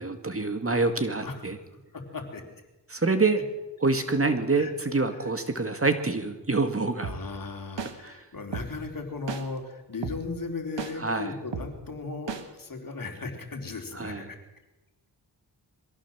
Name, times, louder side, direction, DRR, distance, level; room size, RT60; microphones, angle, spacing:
voice 1, 0.0-1.6 2.9-3.4 3.8-7.1 8.0-8.2 11.0-11.3 14.0-14.2, right 3 dB, 30° right, 8 dB, 2.2 m, -26 dB
voice 2, 1.7-2.4 4.6-4.7 5.1-5.3 7.0-14.4, left 3 dB, 50° left, 3 dB, 4.1 m, -37 dB
sound 1, 7.0-7.2 7.8-7.9 8.5-8.7 9.3-9.4 10.0-10.2 10.8-10.9 11.5-11.7 12.3-12.4, right 6 dB, 80° right, 2.2 m, -32 dB
22.5 x 16.0 x 7.4 m, 1.0 s
cardioid pair, 70°, 43 cm